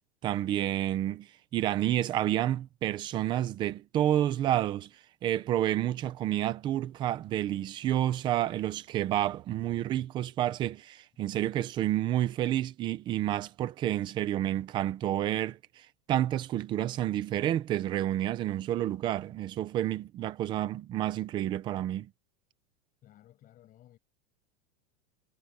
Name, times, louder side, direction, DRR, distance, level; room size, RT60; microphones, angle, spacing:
voice 1, 0.2-4.9 5.2-22.1, right 12 dB, 15° right, 0.5 m, -30 dB
voice 2, 23.0-24.0, left 13 dB, 25° left, 6.6 m, -57 dB
supercardioid pair, 180°, 35 cm